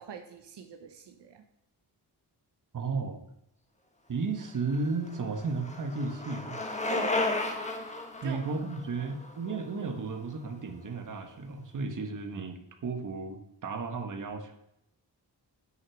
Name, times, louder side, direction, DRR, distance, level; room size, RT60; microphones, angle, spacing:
voice 1, 0.0-1.4 6.9-7.2 8.2-8.4, right 8 dB, 80° right, 6 dB, 1.1 m, -42 dB
voice 2, 2.7-3.2 4.1-6.6 8.2-14.5, right 4 dB, 45° right, 6 dB, 1.5 m, -34 dB
Bicycle, 4.5-10.5, left 2 dB, 15° left, 1.5 m, -34 dB
9.5 x 6.5 x 6.3 m, 0.80 s
wide cardioid pair, 140°, 41 cm